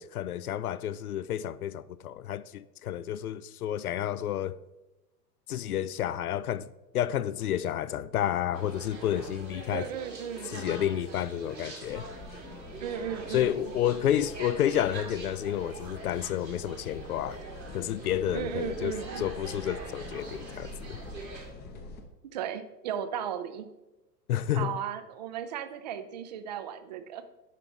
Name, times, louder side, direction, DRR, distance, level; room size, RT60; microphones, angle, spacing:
voice 1, 0.0-4.6 5.5-6.7 6.9-9.9 10.5-12.1 13.3-17.4 17.7-21.0 24.3-24.7, left 11 dB, 65° left, 0.5 m, -30 dB
sound 1, 8.5-21.5, right 3 dB, 85° right, 1.8 m, -44 dB
voice 2, 9.7-10.7 12.8-13.7 18.3-19.3 22.3-23.7 24.5-27.3, right 9 dB, 30° right, 0.4 m, -36 dB
sound 2, 11.8-22.0, left 3 dB, 20° left, 0.7 m, -46 dB
9.4 x 5.7 x 3.6 m
figure-of-eight pair, 95°, 50 cm